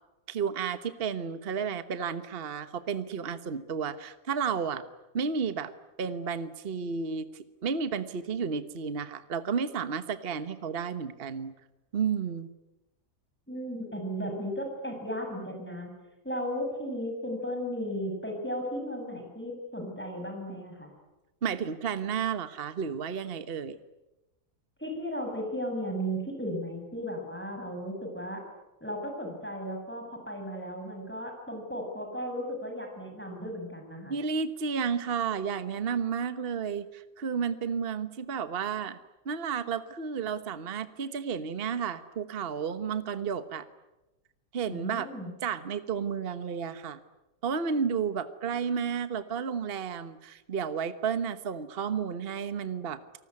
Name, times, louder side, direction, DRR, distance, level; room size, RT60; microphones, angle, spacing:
voice 1, 0.3-4.8 5.1-5.7 6.0-11.5 11.9-12.5 21.4-23.8 34.1-39.0 39.2-43.7 44.5-45.1 45.4-47.0 47.4-53.0, right 6 dB, 40° right, 11 dB, 1.3 m, -32 dB
voice 2, 13.5-15.9 16.2-20.9 24.8-28.4 28.8-34.1 44.7-45.3, equal, 5° left, 3 dB, 6.7 m, -35 dB
29.0 x 19.5 x 9.8 m, 1.0 s
omnidirectional pair, 1.8 m